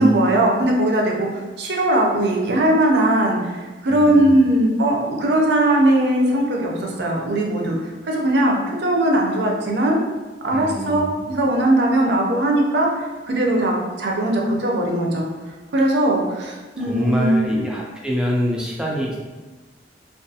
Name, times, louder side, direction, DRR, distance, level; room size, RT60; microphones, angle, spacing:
voice 1, 0.0-7.8 8.0-8.6 8.8-10.0 10.4-15.2 15.7-17.7, right 1 dB, 70° right, -1 dB, 0.5 m, -19 dB
voice 2, 3.9-4.3 10.5-11.3 16.8-19.2, equal, 5° right, -3 dB, 0.3 m, -25 dB
2.4 x 2.3 x 2.6 m, 1.2 s
head